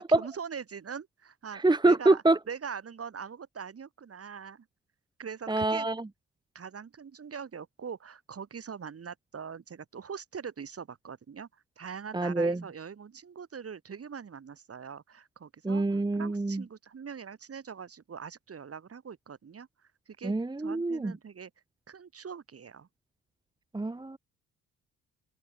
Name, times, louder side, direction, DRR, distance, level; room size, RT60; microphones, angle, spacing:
voice 1, 0.0-2.2 2.5-4.7 5.2-5.9 6.5-19.7 20.1-21.5 21.9-22.9, right 6 dB, 45° right, 6.2 m, -42 dB
voice 2, 1.5-2.4 5.5-6.1 12.1-12.6 15.6-16.6 20.2-21.1 23.7-24.2, right 2 dB, 15° right, 1.2 m, -26 dB
open air
supercardioid pair, 65°, 32 cm